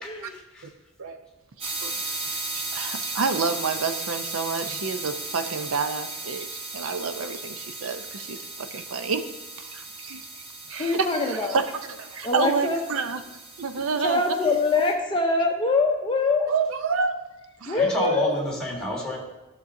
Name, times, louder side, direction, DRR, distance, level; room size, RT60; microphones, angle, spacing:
voice 1, 0.0-0.7 17.7-19.2, equal, 5° left, -2 dB, 1.9 m, -29 dB
sound 1, 1.6-14.9, right 2 dB, 30° right, 1.2 m, -36 dB
voice 2, 1.6-9.2 9.6-10.3 10.7-13.2 13.6-14.2 16.5-17.2 17.6-17.8, right 5 dB, 75° right, 9 dB, 0.6 m, -29 dB
voice 3, 10.8-11.6 12.2-12.8 14.0-16.5 17.7-18.3, left 3 dB, 25° left, 2 dB, 0.6 m, -24 dB
13.5 x 6.1 x 2.6 m, 1.1 s
head